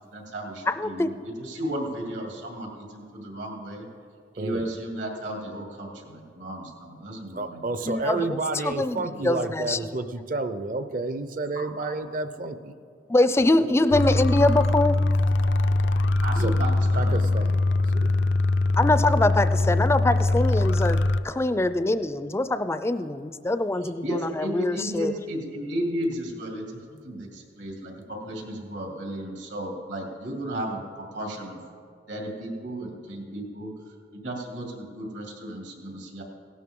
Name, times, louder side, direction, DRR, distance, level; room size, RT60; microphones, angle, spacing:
voice 1, 0.1-3.9 4.3-7.6 11.5-11.9 13.6-13.8 16.2-17.4 24.0-30.8 31.1-31.6 32.1-33.7 34.1-36.2, right 1 dB, 80° right, 0 dB, 2.6 m, -34 dB
voice 2, 0.7-1.1 7.9-10.0 13.1-15.0 18.8-25.1, left 2 dB, 15° left, 12 dB, 0.4 m, -24 dB
voice 3, 4.4-4.7 7.4-12.7 16.4-16.5 16.9-17.6 17.9-18.1, right 3 dB, 45° right, 10 dB, 0.6 m, -30 dB
sound 1, 13.9-21.2, left 2 dB, 80° left, 0.5 m, -22 dB
17.0 x 12.5 x 3.7 m, 2.3 s
head